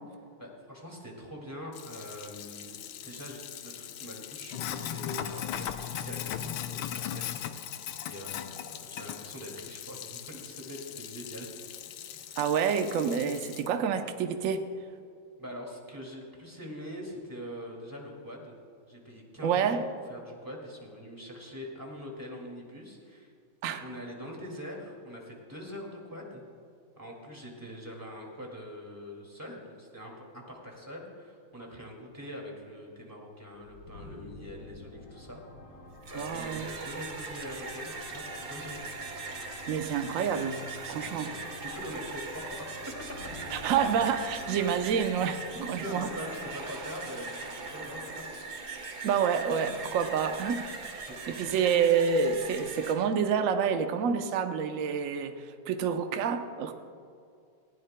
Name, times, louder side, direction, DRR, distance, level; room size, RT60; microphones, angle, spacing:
voice 1, 0.4-2.8 3.0-7.4 8.1-11.5 15.4-18.5 18.9-19.8 20.1-23.3 23.8-26.4 27.0-35.4 36.1-38.9 40.8-42.7 45.2-45.3 45.8-48.2 51.1-51.4, equal, 10° right, -1 dB, 2.0 m, -43 dB
Sink (filling or washing), 1.7-13.7, left 10 dB, 75° left, 1.3 m, -39 dB
voice 2, 12.4-14.7 19.4-19.8 23.6-23.8 36.1-36.7 39.7-40.6 40.9-41.3 43.5-45.4 45.7-46.1 49.0-56.7, right 7 dB, 80° right, 7 dB, 0.7 m, -28 dB
sound 1, 33.5-51.2, left 2 dB, 45° left, 1.6 m, -49 dB
sound 2, 35.9-52.9, right 4 dB, 50° right, 1.8 m, -40 dB
19.5 x 15.5 x 2.2 m, 2.3 s
omnidirectional pair, 2.4 m